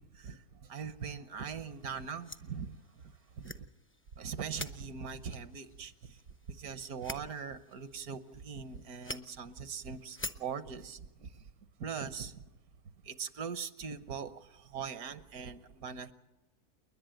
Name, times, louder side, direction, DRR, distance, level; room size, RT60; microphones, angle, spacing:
voice 1, 0.0-2.8 3.4-3.6 4.2-6.2 6.5-11.4 11.8-12.4 13.0-16.1, right 6 dB, 75° right, 1.5 m, -41 dB
sound 1, 1.4-10.6, left 1 dB, 20° left, 0.3 m, -48 dB
29.0 x 11.0 x 9.0 m
omnidirectional pair, 1.6 m